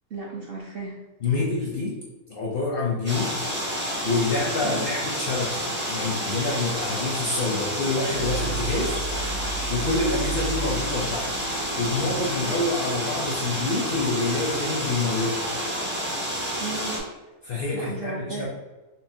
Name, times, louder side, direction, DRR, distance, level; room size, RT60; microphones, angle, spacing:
voice 1, 0.1-1.0 4.6-4.9 12.4-12.7 16.6-17.0 17.7-18.5, right 3 dB, 55° right, -3 dB, 0.6 m, -35 dB
voice 2, 1.2-2.0 2.3-3.4 4.0-9.0 9.7-11.3 11.8-15.4 17.4-18.5, left 3 dB, 55° left, -4 dB, 0.6 m, -27 dB
sound 1, 3.1-17.0, equal, 15° right, 0.4 m, -29 dB
sound 2, 7.9-14.6, right 3 dB, 75° right, 1.2 m, -35 dB
5.5 x 2.2 x 2.6 m, 1.2 s
omnidirectional pair, 1.5 m